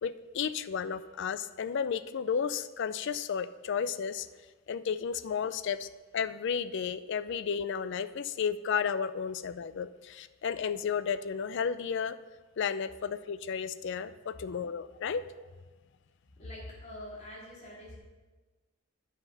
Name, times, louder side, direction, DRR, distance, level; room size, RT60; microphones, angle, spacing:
voice 1, 0.0-4.3 4.7-5.9 6.1-12.2 12.6-15.2, left 6 dB, 55° left, 14 dB, 0.4 m, -33 dB
voice 2, 16.4-18.0, left 1 dB, 35° left, -6 dB, 2.5 m, -44 dB
9.7 x 5.8 x 5.5 m, 1.3 s
head